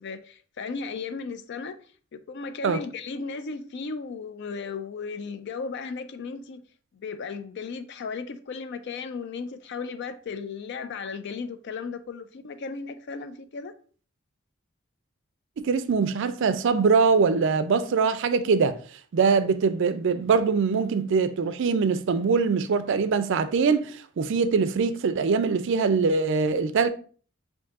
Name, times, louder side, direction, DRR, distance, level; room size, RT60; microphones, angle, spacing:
voice 1, 0.0-1.8 2.3-6.6 6.9-13.7, left 4 dB, 55° left, 0.4 m, -35 dB
voice 2, 15.6-18.8 19.1-26.9, right 5 dB, 60° right, 0.4 m, -23 dB
7.1 x 2.6 x 2.4 m
head